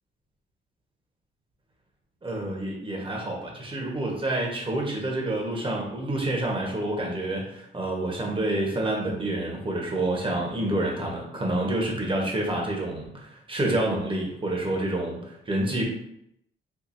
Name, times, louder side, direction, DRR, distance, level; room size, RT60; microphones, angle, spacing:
voice 1, 2.2-15.8, right 1 dB, 25° right, -2 dB, 1.2 m, -28 dB
4.5 x 2.6 x 2.6 m, 0.77 s
cardioid pair, 90°, 20 cm